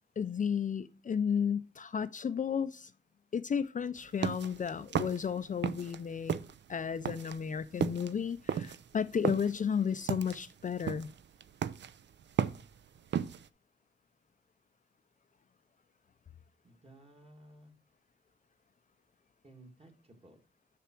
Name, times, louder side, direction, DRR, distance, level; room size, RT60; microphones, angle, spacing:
voice 1, 0.2-2.9 3.3-6.4 6.7-11.1, left 7 dB, 45° left, 0.4 m, -33 dB
sound 1, 4.0-6.0 6.3-13.5, right 8 dB, 70° right, 0.5 m, -35 dB
voice 2, 16.6-17.7 19.4-20.4, right 1 dB, 30° right, 1.8 m, -56 dB
7.0 x 5.9 x 4.3 m
wide cardioid pair, 105°, 19 cm